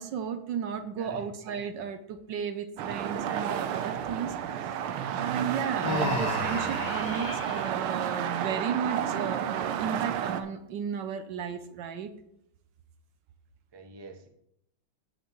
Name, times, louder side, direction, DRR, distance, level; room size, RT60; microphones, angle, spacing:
voice 1, 0.0-4.3 5.1-12.1, right 7 dB, 70° right, 9 dB, 1.2 m, -34 dB
voice 2, 1.0-1.3 4.7-5.0 13.7-14.3, right 2 dB, 30° right, 4 dB, 0.4 m, -47 dB
sound 1, 2.8-10.4, right 9 dB, 90° right, 1.6 m, -31 dB
Human voice, 5.8-7.7, left 4 dB, 60° left, 0.4 m, -33 dB
15.0 x 5.6 x 3.0 m, 0.75 s
omnidirectional pair, 2.3 m